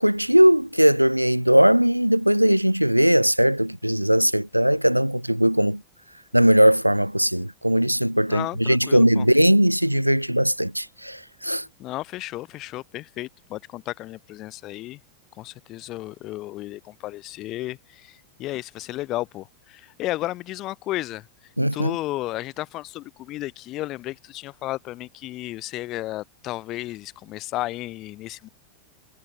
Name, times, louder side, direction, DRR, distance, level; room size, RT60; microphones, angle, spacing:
voice 1, 0.0-5.8 6.3-11.6 21.6-22.0, equal, 90° right, 0.6 m, -19 dB
voice 2, 8.3-9.2 11.8-15.0 15.4-21.3 21.7-28.5, left 17 dB, 35° left, 1.4 m, -33 dB
figure-of-eight pair, 90°, 0 cm